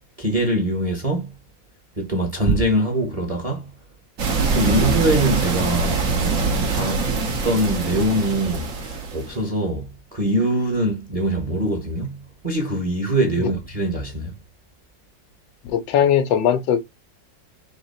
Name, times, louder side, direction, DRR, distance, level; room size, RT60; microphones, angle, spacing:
voice 1, 0.2-1.3 2.0-3.7 4.5-7.1 7.4-14.3, right 1 dB, 25° right, 1.0 m, -23 dB
sound 1, 4.2-9.4, right 4 dB, 55° right, 1.4 m, -23 dB
voice 2, 15.6-16.8, left 9 dB, 80° left, 1.5 m, -19 dB
3.9 x 2.9 x 4.2 m
omnidirectional pair, 2.0 m